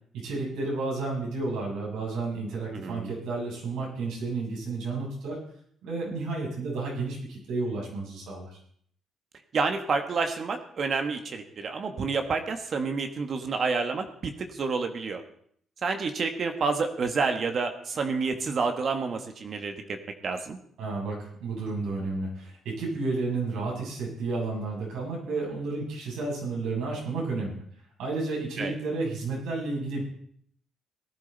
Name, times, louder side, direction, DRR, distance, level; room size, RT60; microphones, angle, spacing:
voice 1, 0.2-5.4 5.8-8.5 20.8-27.6 28.0-30.0, right 3 dB, 90° right, -3 dB, 7.2 m, -31 dB
voice 2, 2.7-3.1 9.5-15.2 15.8-20.0 20.2-20.6 28.6-28.7, right 4 dB, 50° right, 6 dB, 1.6 m, -29 dB
18.0 x 11.5 x 4.1 m, 0.64 s
cardioid pair, 90°, 0 cm